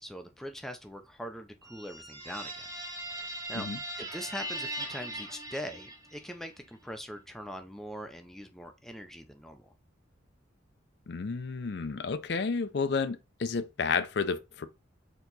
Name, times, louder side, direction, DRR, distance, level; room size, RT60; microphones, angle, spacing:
voice 1, 0.0-2.7 3.1-3.7 4.0-9.7, equal, ahead, 0.4 m, -42 dB
sound 1, 1.6-6.3, right 1 dB, 15° right, 0.8 m, -40 dB
voice 2, 11.1-14.7, left 5 dB, 55° left, 0.4 m, -31 dB
4.4 x 2.9 x 3.9 m
head